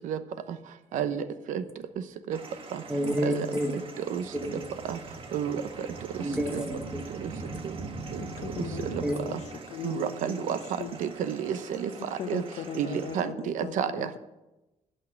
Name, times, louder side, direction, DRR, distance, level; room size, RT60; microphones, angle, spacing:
voice 1, 0.9-1.6 3.2-3.5 4.1-4.2 4.9-5.0 5.3-5.6 6.5-6.6 8.1-8.2 8.9-9.0 9.8-10.6 11.0-11.9 12.3-12.4 12.8-14.1, right 9 dB, 80° right, 11 dB, 0.9 m, -30 dB
sound 1, 2.3-13.2, right 3 dB, 45° right, 1.5 m, -42 dB
voice 2, 2.9-3.8 4.3-4.6 6.2-7.0 9.0-9.2, equal, 5° right, 4 dB, 1.3 m, -29 dB
voice 3, 8.2-9.4 9.7-10.9 12.1-14.2, left 8 dB, 65° left, 9 dB, 1.0 m, -39 dB
12.0 x 5.6 x 9.1 m, 1.0 s
cardioid pair, 140°, 13 cm